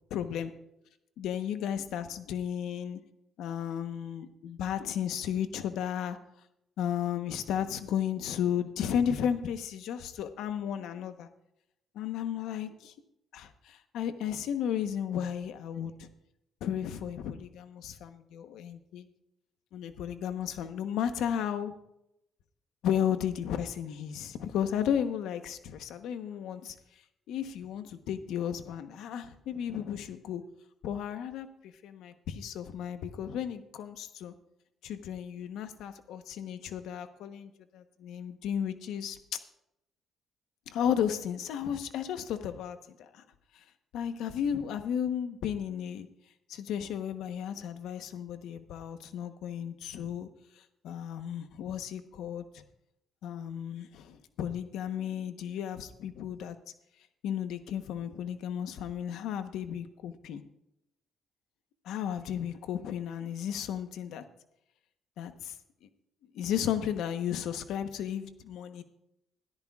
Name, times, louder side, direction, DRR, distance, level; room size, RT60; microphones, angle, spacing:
voice 1, 0.1-0.5 1.2-3.0 3.4-6.2 6.8-11.3 11.9-12.9 13.3-16.1 16.6-19.1 19.7-21.7 22.8-26.7 27.3-30.4 30.8-34.3 34.8-39.4 40.7-43.2 43.9-46.1 46.5-50.3 50.8-52.6 53.2-56.6 57.2-60.4 61.8-64.2 65.2-65.5 66.3-68.8, left 9 dB, 85° left, 9 dB, 1.0 m, -34 dB
20.5 x 13.5 x 2.4 m, 0.81 s
cardioid pair, 90°, 0 cm